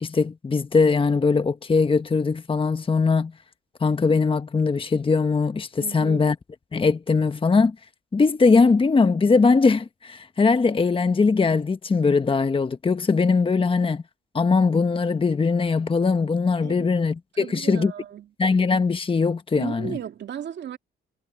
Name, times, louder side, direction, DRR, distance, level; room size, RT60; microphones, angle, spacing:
voice 1, 0.0-3.3 3.8-6.3 6.7-7.7 8.1-14.0 14.3-17.9 18.4-19.9, left 4 dB, 25° left, 1.3 m, -21 dB
voice 2, 5.8-6.4 16.6-16.9 17.3-18.3 19.6-20.8, right 9 dB, 60° right, 2.4 m, -35 dB
cardioid pair, 90°, 20 cm